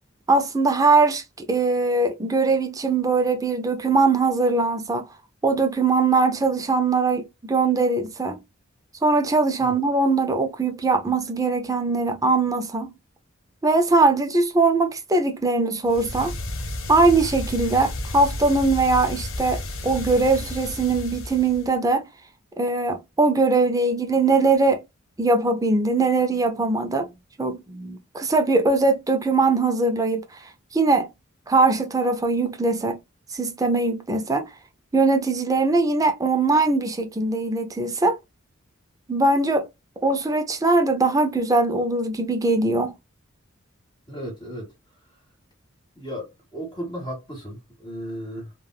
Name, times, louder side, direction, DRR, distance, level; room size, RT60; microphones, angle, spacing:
voice 1, 0.3-5.1 5.4-8.4 9.0-12.9 13.6-16.3 16.9-22.0 22.6-24.8 25.2-27.1 27.4-30.4 30.7-31.1 31.5-33.0 33.3-34.5 34.9-38.2 39.1-39.7 40.0-42.9, right 3 dB, 15° right, 0.4 m, -21 dB
sound 1, 15.8-21.8, left 1 dB, 75° left, 0.7 m, -32 dB
voice 2, 44.1-44.7 46.0-48.5, equal, 20° left, 1.3 m, -35 dB
3.3 x 2.3 x 2.3 m
head